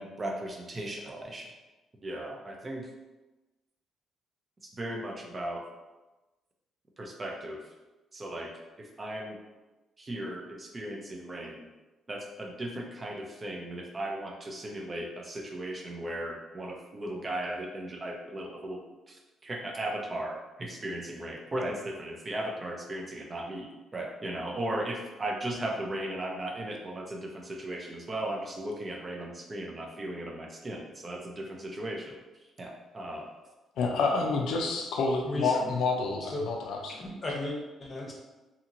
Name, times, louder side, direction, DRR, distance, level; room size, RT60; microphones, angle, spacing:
voice 1, 0.0-1.5 2.0-2.8 4.8-5.6 7.0-7.6 8.1-8.5 8.8-9.4 10.0-11.6 12.1-18.8 19.1-19.2 19.4-32.2 32.6-33.3, right 1 dB, 30° right, 1 dB, 0.5 m, -36 dB
voice 2, 33.8-36.9, left 4 dB, 80° left, 1 dB, 0.3 m, -28 dB
voice 3, 35.2-35.7 36.2-36.5 36.9-38.1, left 1 dB, 35° left, -2 dB, 0.7 m, -35 dB
2.8 x 2.8 x 2.5 m, 1.1 s
cardioid pair, 90°, 0 cm